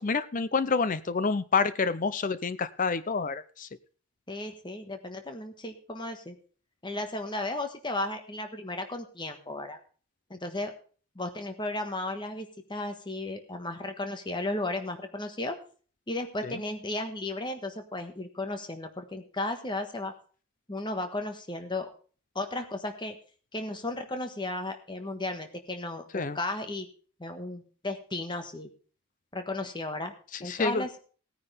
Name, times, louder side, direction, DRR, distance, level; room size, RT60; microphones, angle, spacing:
voice 1, 0.0-3.7 16.4-16.5 26.1-26.4 30.4-30.8, left 4 dB, 35° left, 15 dB, 0.5 m, -28 dB
voice 2, 4.3-6.3 6.8-9.8 10.3-10.7 11.1-15.6 16.1-20.1 20.7-21.9 22.3-23.1 23.5-26.9 27.2-28.7 29.3-30.1 30.4-31.0, left 2 dB, 20° left, 6 dB, 1.4 m, -34 dB
17.0 x 9.7 x 3.4 m, 0.40 s
head